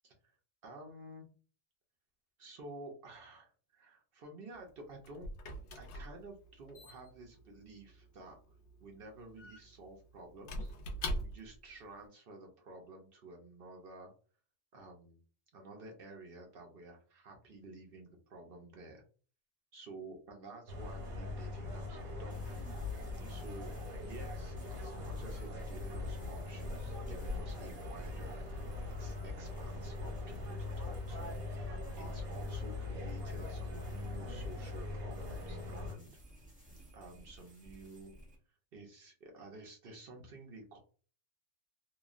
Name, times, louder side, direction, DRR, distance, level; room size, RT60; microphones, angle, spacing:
voice 1, 0.0-0.4 0.6-1.3 2.4-5.3 5.7-8.5 8.8-10.7 11.2-14.1 14.7-15.2 15.5-19.0 19.7-22.4 23.3-28.5 29.0-36.2 36.9-38.1 38.7-40.8, right 2 dB, 55° right, 1 dB, 0.6 m, -52 dB
Squeak / Wood, 4.5-11.7, equal, 65° left, 0.7 m, -44 dB
sound 1, 20.7-35.9, left 2 dB, 80° right, 1.4 m, -41 dB
sound 2, 22.3-38.4, right 1 dB, 10° right, 0.3 m, -56 dB
3.0 x 2.2 x 2.3 m, 0.40 s
omnidirectional pair, 1.5 m